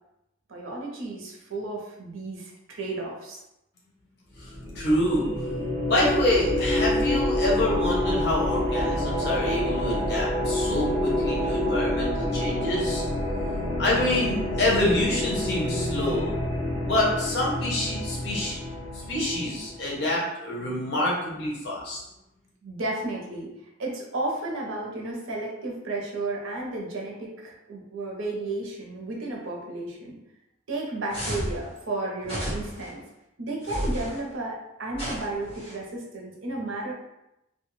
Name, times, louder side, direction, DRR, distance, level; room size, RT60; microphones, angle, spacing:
voice 1, 0.5-3.4 22.6-23.5 23.8-30.2 30.7-33.0 33.4-36.9, right 2 dB, 85° right, -1 dB, 0.7 m, -33 dB
voice 2, 4.3-5.3 5.8-13.0 13.8-16.3 16.8-18.6 18.9-22.0, left 1 dB, 55° left, -4 dB, 0.9 m, -27 dB
sound 1, 4.4-19.8, left 1 dB, 25° right, 1.2 m, -28 dB
sound 2, 31.1-31.6 32.2-32.9 33.6-34.2 34.9-35.8, equal, 30° left, 1.2 m, -32 dB
2.6 x 2.3 x 3.1 m, 0.88 s
head